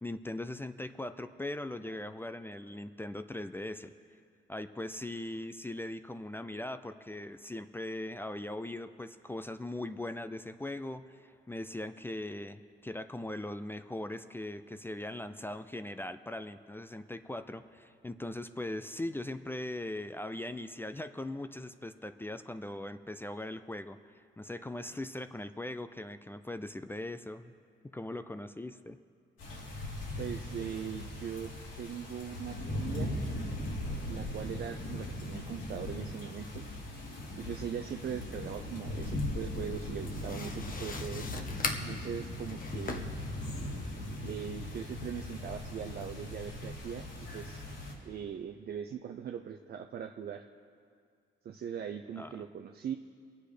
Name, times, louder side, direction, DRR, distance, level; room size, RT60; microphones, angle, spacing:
voice 1, 0.0-3.9 4.5-27.5 27.9-29.0 52.2-52.3, left 1 dB, 10° left, 11 dB, 0.5 m, -40 dB
sound 1, 29.4-47.9, left 1 dB, 75° left, 3.3 m, -39 dB
voice 2, 30.2-31.5 31.8-33.1 34.1-36.6 37.4-41.3 41.8-43.1 44.2-47.1 47.3-47.7 48.0-50.5 51.4-52.9, right 8 dB, 55° right, 5 dB, 0.6 m, -40 dB
sound 2, 39.0-44.2, left 3 dB, 45° left, 1.2 m, -41 dB
22.5 x 8.4 x 5.0 m, 2.2 s
cardioid pair, 90°, 20 cm